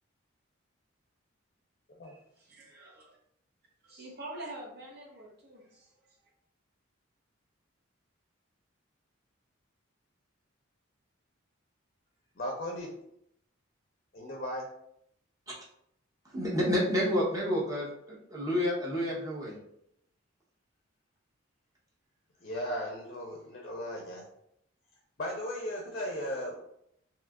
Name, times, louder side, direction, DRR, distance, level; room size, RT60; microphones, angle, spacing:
voice 1, 2.0-3.2 3.8-5.9, right 1 dB, 50° right, -1 dB, 0.8 m, -46 dB
voice 2, 12.4-13.0 14.1-14.7 22.4-24.2 25.2-26.6, equal, 45° left, 0 dB, 0.5 m, -36 dB
voice 3, 16.3-19.6, equal, 15° right, -5 dB, 0.7 m, -29 dB
2.8 x 2.3 x 3.4 m, 0.74 s
head